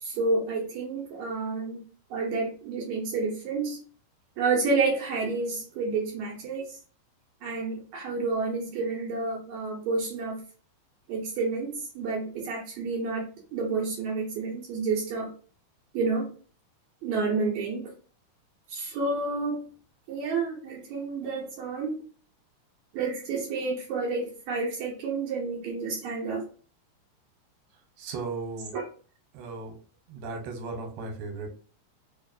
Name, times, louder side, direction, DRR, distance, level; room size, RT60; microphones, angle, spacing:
voice 1, 0.0-1.8 2.1-3.8 4.4-6.8 7.4-10.4 11.1-15.3 15.9-16.3 17.0-17.9 18.7-19.7 20.1-22.0 22.9-26.4 28.7-28.8, right 4 dB, 70° right, -2 dB, 2.1 m, -30 dB
voice 2, 28.0-28.7 29.3-29.8 30.1-31.5, right 3 dB, 90° right, 5 dB, 2.4 m, -36 dB
5.0 x 2.5 x 2.5 m, 0.40 s
omnidirectional pair, 3.7 m